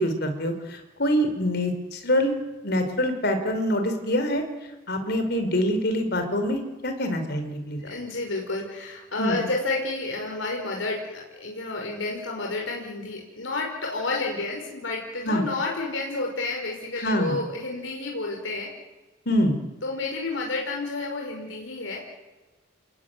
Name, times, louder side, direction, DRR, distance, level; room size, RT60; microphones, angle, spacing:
voice 1, 0.0-2.3 2.6-4.4 4.9-7.9 9.2-9.4 15.2-15.4 17.0-17.4 19.3-19.5, equal, 55° left, 7 dB, 4.8 m, -25 dB
voice 2, 7.8-18.7 19.8-22.0, left 3 dB, 75° left, 0 dB, 5.5 m, -30 dB
29.5 x 20.5 x 9.5 m, 1.2 s
head